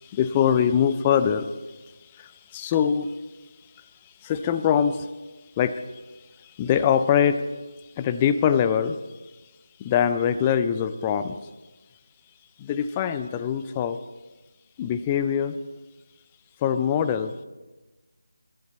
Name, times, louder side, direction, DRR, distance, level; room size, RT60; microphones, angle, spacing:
voice 1, 0.0-3.2 3.8-5.1 5.6-7.4 8.0-9.0 9.8-11.5 12.6-14.0 14.8-15.6 16.6-17.4, left 8 dB, 20° left, 11 dB, 0.5 m, -24 dB
14.5 x 11.5 x 4.2 m, 1.2 s
figure-of-eight pair, 160°, 0 cm